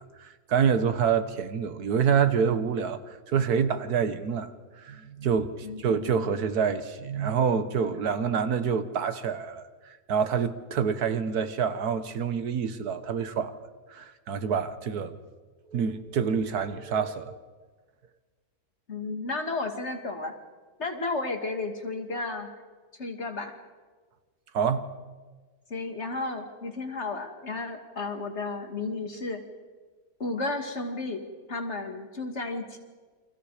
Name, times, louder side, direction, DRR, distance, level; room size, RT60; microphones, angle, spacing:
voice 1, 0.0-3.0 3.3-4.5 4.8-13.5 13.9-15.2 15.7-17.4 24.5-24.8, right 6 dB, 80° right, 1.7 m, -27 dB
voice 2, 5.6-6.5 18.9-20.3 20.8-22.5 23.0-23.5 25.7-29.4 30.2-32.8, left 3 dB, 45° left, 2.7 m, -33 dB
29.0 x 24.5 x 5.0 m
omnidirectional pair, 1.6 m